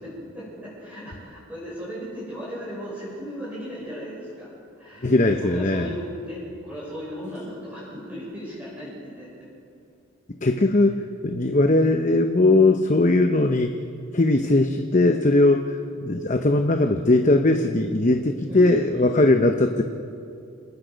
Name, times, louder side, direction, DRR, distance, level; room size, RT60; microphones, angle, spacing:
voice 1, 0.0-4.5 4.8-9.3 18.5-19.3, equal, 5° right, -8 dB, 6.3 m, -36 dB
voice 2, 5.0-5.9 10.4-13.9 14.1-19.8, left 2 dB, 35° left, 5 dB, 0.8 m, -20 dB
28.0 x 20.0 x 5.2 m, 2.5 s
head